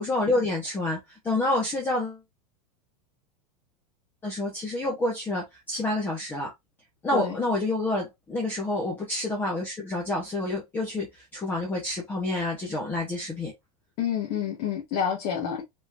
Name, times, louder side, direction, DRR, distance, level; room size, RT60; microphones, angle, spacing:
voice 1, 0.0-2.2 4.2-6.5 7.0-11.1 11.3-13.5, left 2 dB, 10° left, 1.0 m, -28 dB
voice 2, 14.0-15.6, left 8 dB, 35° left, 1.5 m, -28 dB
5.3 x 3.7 x 2.6 m
supercardioid pair, 180°, 20 cm